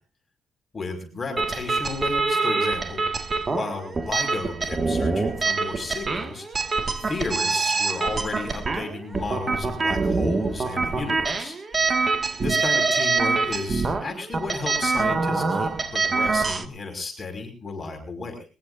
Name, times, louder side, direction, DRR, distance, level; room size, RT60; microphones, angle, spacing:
voice 1, 0.7-3.1 3.5-6.5 7.0-11.6 12.4-18.4, left 3 dB, 30° left, 3 dB, 5.6 m, -33 dB
sound 1, 1.4-16.7, right 4 dB, 35° right, 1.9 m, -25 dB
21.5 x 20.0 x 2.6 m, 0.37 s
cardioid pair, 90°, 0 cm